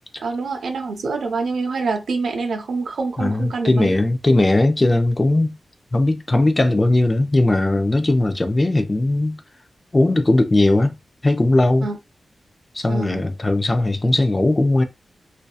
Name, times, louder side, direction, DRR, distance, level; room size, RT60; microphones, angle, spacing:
voice 1, 0.2-3.9 11.8-12.0 12.9-13.2, right 4 dB, 90° right, 0.5 m, -26 dB
voice 2, 3.2-5.6 5.9-9.4 9.9-10.9 11.2-11.9 12.7-14.8, left 2 dB, 20° left, 0.4 m, -18 dB
2.7 x 2.2 x 2.3 m
wide cardioid pair, 160°, 0 cm